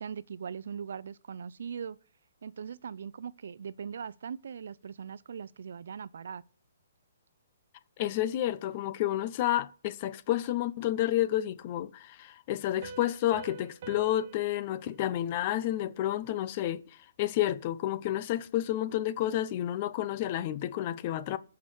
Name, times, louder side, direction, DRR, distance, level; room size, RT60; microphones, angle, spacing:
voice 1, 0.0-2.0 2.4-6.4, right 7 dB, 65° right, 0.5 m, -40 dB
voice 2, 8.0-21.4, left 13 dB, 30° left, 0.6 m, -30 dB
Piano, 12.8-16.2, right 3 dB, 35° right, 1.2 m, -47 dB
14.5 x 5.9 x 6.3 m
hypercardioid pair, 170°, 0 cm